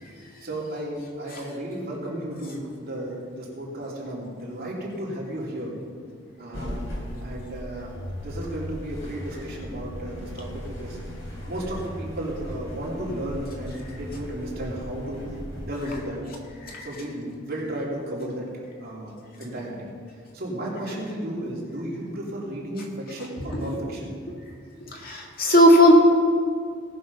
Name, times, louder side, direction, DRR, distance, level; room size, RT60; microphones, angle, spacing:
voice 1, 0.4-5.7 6.4-6.9 7.2-11.0 11.5-16.2 16.8-18.5 18.8-19.9 20.3-24.1, right 1 dB, 50° right, -4 dB, 3.2 m, -34 dB
sound 1, 6.5-16.0, equal, 80° left, 3.6 m, -37 dB
voice 2, 24.9-25.9, equal, 50° left, 0 dB, 2.0 m, -17 dB
18.5 x 6.6 x 5.4 m, 2.3 s
head